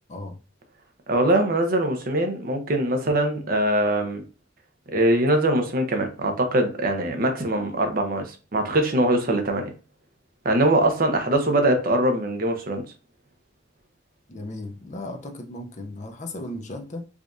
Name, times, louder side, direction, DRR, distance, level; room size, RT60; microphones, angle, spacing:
voice 1, 1.1-4.2 4.9-8.3 8.5-9.7 10.4-12.8, right 1 dB, 45° right, 0.7 m, -22 dB
voice 2, 14.3-17.0, left 1 dB, 35° left, 0.6 m, -36 dB
4.9 x 2.5 x 2.5 m
head